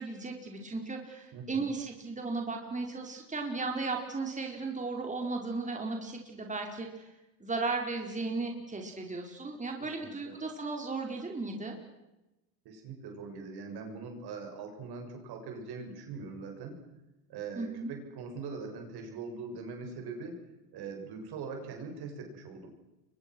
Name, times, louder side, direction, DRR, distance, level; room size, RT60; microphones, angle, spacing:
voice 1, 0.0-7.0 7.4-11.7 17.5-17.9, right 3 dB, 15° right, 2 dB, 4.9 m, -35 dB
voice 2, 1.3-1.7 9.8-10.3 12.6-16.8 17.3-20.4 20.7-22.7, right 4 dB, 55° right, 3 dB, 7.7 m, -42 dB
30.0 x 24.0 x 6.3 m, 0.98 s
hypercardioid pair, 80°, 45 cm